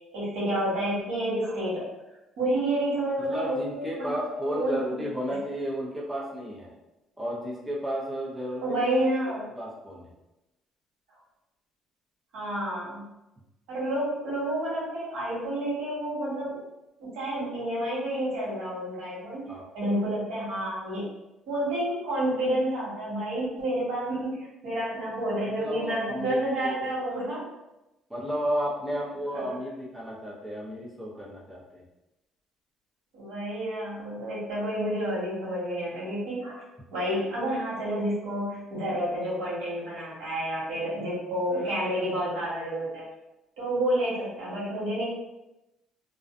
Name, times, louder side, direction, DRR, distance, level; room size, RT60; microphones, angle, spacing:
voice 1, 0.1-1.9 2.4-4.2 4.5-5.0 8.6-9.5 12.3-13.1 13.7-16.6 17.0-21.1 21.5-27.5 29.3-29.4 33.1-36.6 36.9-43.0 43.6-45.0, right 1 dB, 85° right, -7 dB, 1.2 m, -29 dB
voice 2, 3.3-6.7 7.2-8.8 9.5-10.1 19.5-19.6 25.6-26.7 28.1-31.8, equal, 5° right, -5 dB, 0.6 m, -33 dB
2.4 x 2.2 x 2.5 m, 0.96 s
cardioid pair, 125°, 0 cm